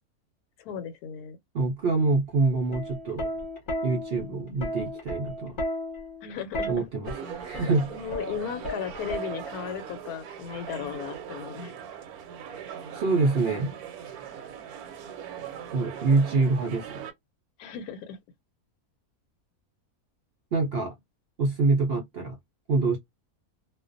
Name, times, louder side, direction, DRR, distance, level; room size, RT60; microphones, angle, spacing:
voice 1, 0.6-1.4 6.2-6.8 7.9-11.7 17.6-18.2, left 8 dB, 90° left, 1.1 m, -36 dB
voice 2, 1.5-3.3 3.8-5.6 6.7-7.1 7.4-8.0 12.9-13.8 15.7-17.0 20.5-21.0 21.4-22.3 22.7-23.0, right 3 dB, 65° right, 0.6 m, -25 dB
Plucked string instrument, 2.5-9.8 10.8-11.2, equal, 40° left, 0.9 m, -34 dB
sound 1, 7.0-17.1, right 8 dB, 80° right, 1.1 m, -40 dB
2.4 x 2.1 x 2.4 m
omnidirectional pair, 1.6 m